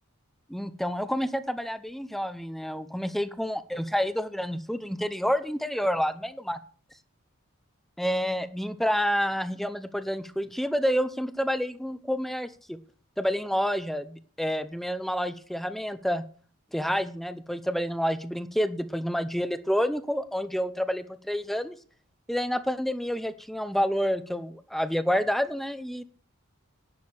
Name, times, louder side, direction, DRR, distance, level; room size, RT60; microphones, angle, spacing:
voice 1, 0.5-6.6 8.0-12.8 13.2-16.2 16.7-21.7 22.3-26.0, equal, ahead, 12 dB, 0.6 m, -29 dB
11.0 x 6.5 x 8.7 m, 0.43 s
head